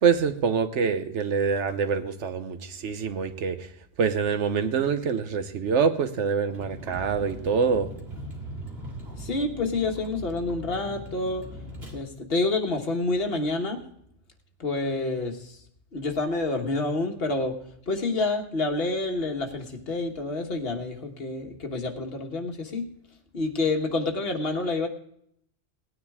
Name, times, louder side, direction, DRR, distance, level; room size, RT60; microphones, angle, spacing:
voice 1, 0.0-3.7 4.0-7.9, right 6 dB, 85° right, 9 dB, 1.2 m, -25 dB
Vehicle, 6.5-12.0, equal, 60° right, 2.3 m, -40 dB
voice 2, 9.2-11.4 11.9-13.8 14.6-15.6 15.9-17.6 17.9-22.9 23.3-24.9, left 2 dB, 60° left, 4 dB, 1.5 m, -28 dB
18.0 x 9.7 x 3.6 m, 0.70 s
omnidirectional pair, 1.2 m